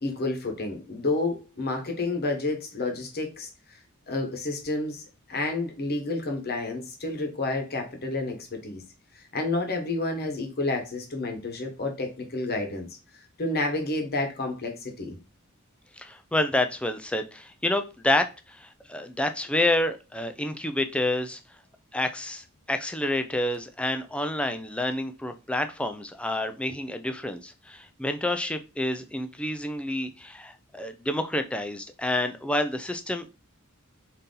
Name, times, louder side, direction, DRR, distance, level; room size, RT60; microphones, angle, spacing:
voice 1, 0.0-3.5 4.1-8.8 9.1-12.9 13.4-15.2, left 2 dB, 45° left, 4 dB, 1.0 m, -30 dB
voice 2, 16.0-21.4 21.9-33.3, left 1 dB, 5° left, 8 dB, 0.3 m, -28 dB
3.9 x 2.7 x 3.8 m, 0.30 s
head